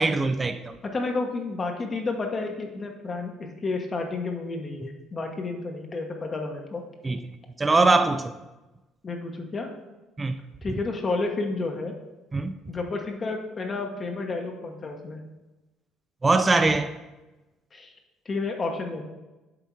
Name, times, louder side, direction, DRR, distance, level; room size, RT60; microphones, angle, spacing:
voice 1, 0.0-0.8 7.0-7.2 7.6-8.3 10.2-10.4 12.3-12.5 16.2-16.9, right 3 dB, 20° right, 0.4 m, -22 dB
voice 2, 0.8-6.8 9.0-9.7 10.6-11.9 12.7-15.2 17.7-17.9 18.2-19.0, left 3 dB, 30° left, 0.9 m, -31 dB
7.8 x 3.5 x 4.5 m
cardioid pair, 100°, 0 cm